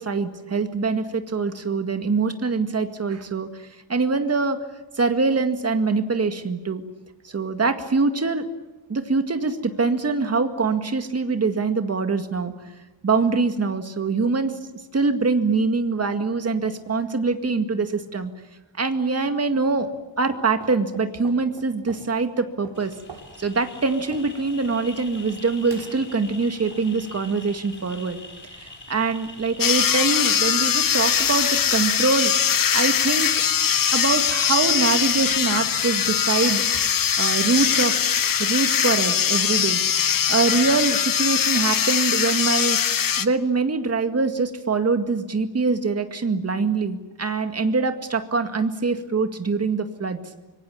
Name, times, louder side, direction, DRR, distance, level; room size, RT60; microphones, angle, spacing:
voice 1, 0.0-4.6 4.9-6.8 7.2-8.5 8.9-12.5 13.0-14.5 14.9-18.3 18.8-19.9 20.2-22.9 23.4-28.2 28.6-32.3 32.7-33.3 33.9-36.8 37.2-37.9 38.4-39.8 40.3-50.2, right 4 dB, 30° right, 7 dB, 2.1 m, -24 dB
sound 1, 19.6-20.0 20.3-22.1 22.6-23.3 23.8-24.3 25.7-26.3 26.7-27.3 28.9-30.1 30.4-30.6 30.9-31.5 32.1-32.2 32.7-33.2 33.6-33.8 34.1-34.2 34.6-34.7 35.1-35.2 35.5-35.7 36.0-36.2 36.5-37.2 37.6-38.1, right 4 dB, 60° right, 5.9 m, -47 dB
sound 2, 22.7-41.8, left 3 dB, 25° left, 5.3 m, -45 dB
sound 3, 29.6-43.3, left 8 dB, 45° left, 1.0 m, -21 dB
25.5 x 23.5 x 8.7 m, 1.1 s
wide cardioid pair, 170°, 46 cm